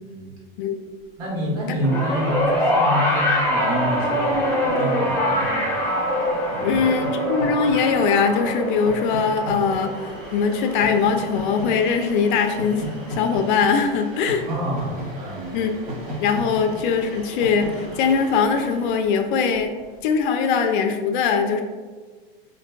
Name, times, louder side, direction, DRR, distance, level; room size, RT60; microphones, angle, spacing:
voice 1, 0.6-0.9 6.6-14.5 15.5-15.7 16.2-19.7 20.0-21.6, left 5 dB, 55° left, 5 dB, 0.5 m, -21 dB
voice 2, 1.2-4.5 4.7-5.8 6.5-6.8 14.4-15.5, equal, 55° right, -4 dB, 1.5 m, -27 dB
Train, 1.6-20.0, equal, 30° right, 0.8 m, -37 dB
sound 1, 1.8-12.3 13.3-13.4, equal, 5° left, 0.9 m, -24 dB
4.8 x 2.6 x 2.2 m, 1.5 s
supercardioid pair, 135°, 30 cm